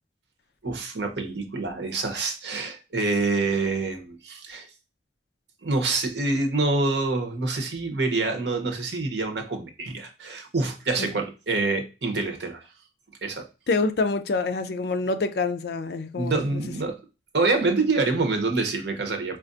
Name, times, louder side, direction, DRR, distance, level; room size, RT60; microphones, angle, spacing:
voice 1, 0.6-4.7 5.6-12.6 13.2-13.5 16.2-17.0 17.3-19.4, right 3 dB, 75° right, 0.9 m, -26 dB
voice 2, 13.7-16.6, left 3 dB, 65° left, 0.4 m, -26 dB
4.5 x 2.4 x 2.5 m
head